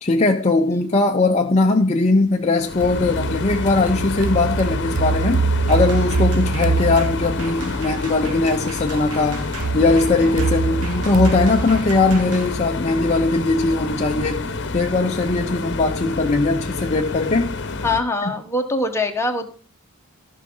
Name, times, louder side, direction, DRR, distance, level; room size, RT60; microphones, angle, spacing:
voice 1, 0.0-17.5 18.2-18.3, left 3 dB, 30° left, 0.6 m, -20 dB
sound 1, 2.6-18.0, left 3 dB, 55° left, 1.0 m, -28 dB
sound 2, 2.8-7.8 9.6-12.6, right 4 dB, 40° right, 0.4 m, -24 dB
sound 3, 5.7-12.5, right 3 dB, 80° right, 2.3 m, -38 dB
voice 2, 17.8-19.5, left 2 dB, 10° left, 1.3 m, -23 dB
14.5 x 5.6 x 5.5 m
head